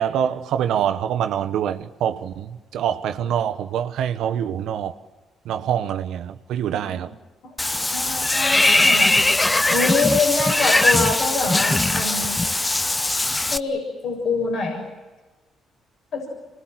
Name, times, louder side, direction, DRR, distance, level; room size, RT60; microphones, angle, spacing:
voice 1, 0.0-4.9 5.4-7.1, right 9 dB, 80° right, 1.2 m, -25 dB
voice 2, 7.4-9.1 9.7-12.4 13.5-14.8 16.1-16.3, left 4 dB, 70° left, 7.0 m, -25 dB
Water / Bathtub (filling or washing), 7.6-13.6, left 2 dB, 15° left, 0.8 m, -20 dB
27.0 x 21.0 x 7.8 m
cardioid pair, 90°, 0 cm